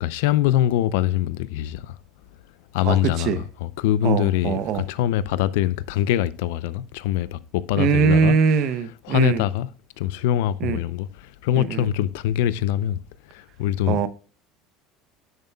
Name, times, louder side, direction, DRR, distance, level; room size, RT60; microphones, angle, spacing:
voice 1, 0.0-2.0 2.7-8.4 9.0-9.7 10.0-13.0 13.3-14.0, left 12 dB, 80° left, 0.5 m, -23 dB
voice 2, 2.8-3.4 4.0-4.9 7.8-9.4 10.6-10.8 11.6-11.9 13.9-14.1, right 6 dB, 60° right, 0.8 m, -22 dB
10.5 x 6.8 x 2.3 m
supercardioid pair, 100°, 0 cm